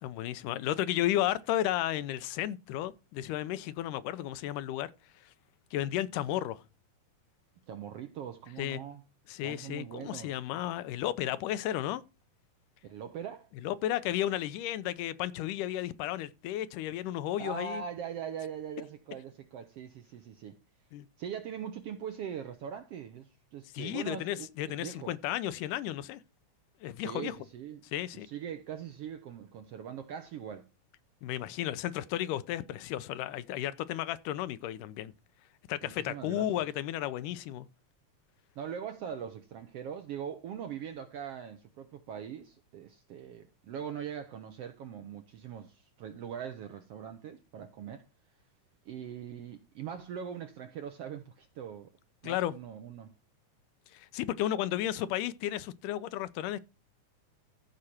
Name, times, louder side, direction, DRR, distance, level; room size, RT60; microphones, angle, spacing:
voice 1, 0.0-4.9 5.7-6.6 8.6-8.8 9.3-12.0 13.6-17.8 20.9-21.1 23.7-26.2 26.8-27.4 27.9-28.3 31.2-35.1 35.7-37.7 52.2-52.5 53.9-56.6, left 13 dB, 85° left, 2.3 m, -33 dB
voice 2, 7.7-9.0 9.4-10.3 12.8-13.5 17.4-20.6 21.2-25.1 27.0-27.9 28.1-30.7 35.8-36.5 38.6-48.0 48.8-51.9 52.2-53.1, right 8 dB, 70° right, 1.5 m, -41 dB
14.5 x 5.0 x 4.3 m
omnidirectional pair, 3.6 m